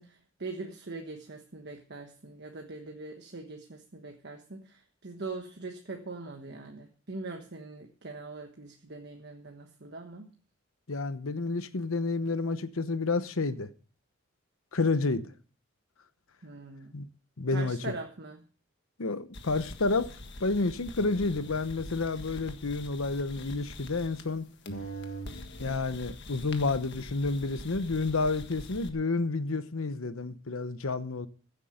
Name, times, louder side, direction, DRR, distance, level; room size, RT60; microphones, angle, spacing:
voice 1, 0.0-10.3 16.4-17.0 17.5-18.5, right 3 dB, 55° right, 1.3 m, -42 dB
voice 2, 10.9-13.7 14.7-15.3 16.9-17.1 17.4-17.8 19.0-24.5 25.6-31.3, left 3 dB, 90° left, 1.0 m, -30 dB
sound 1, 19.3-24.4 24.7-28.9, equal, 60° left, 1.6 m, -43 dB
15.5 x 8.3 x 5.1 m
head